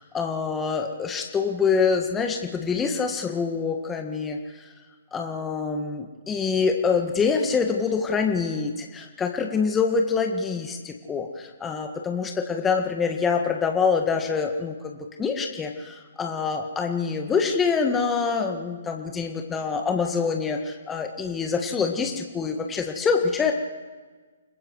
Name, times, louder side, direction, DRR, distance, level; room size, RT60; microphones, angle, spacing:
voice 1, 0.0-4.7 5.1-23.5, left 5 dB, 15° left, 3 dB, 1.7 m, -25 dB
29.5 x 21.0 x 4.8 m, 1.4 s
figure-of-eight pair, 130°, 0 cm